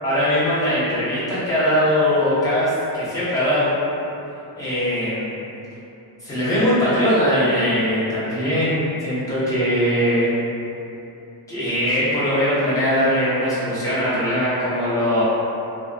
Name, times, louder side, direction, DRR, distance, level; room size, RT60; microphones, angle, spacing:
voice 1, 0.0-3.7 4.6-5.3 6.2-10.3 11.5-15.2, equal, 10° left, -12 dB, 0.9 m, -20 dB
2.5 x 2.3 x 2.3 m, 2.8 s
cardioid pair, 115°, 43 cm